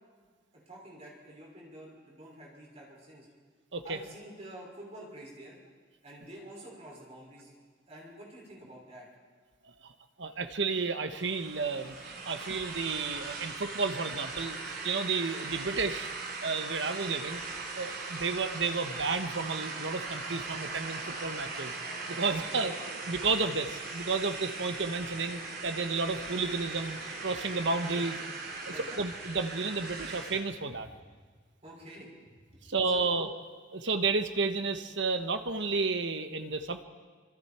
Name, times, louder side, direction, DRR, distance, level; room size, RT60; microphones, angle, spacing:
voice 1, 0.5-3.3 3.8-5.6 6.0-7.5 7.9-9.1 22.3-22.6 27.9-28.1 28.7-29.0 30.9-31.0 31.6-32.4 32.9-33.1, right 1 dB, 35° right, -3 dB, 5.9 m, -48 dB
voice 2, 10.2-14.6 14.8-16.1 16.4-17.4 17.8-21.7 22.1-28.2 28.7-30.9 32.7-33.3 33.7-36.8, right 4 dB, 70° right, 8 dB, 1.2 m, -32 dB
sound 1, 11.1-30.4, right 3 dB, 50° right, 3.3 m, -39 dB
25.5 x 25.5 x 4.5 m, 1.6 s
head